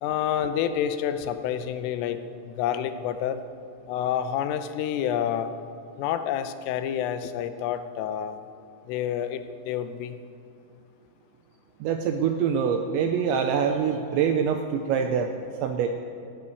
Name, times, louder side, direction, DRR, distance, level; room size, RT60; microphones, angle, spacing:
voice 1, 0.0-3.4 3.9-5.5 6.0-8.4 8.9-10.2, left 9 dB, 80° left, 9 dB, 3.2 m, -28 dB
voice 2, 11.8-15.9, right 7 dB, 85° right, 5 dB, 2.6 m, -25 dB
15.5 x 8.1 x 9.7 m, 2.6 s
omnidirectional pair, 5.9 m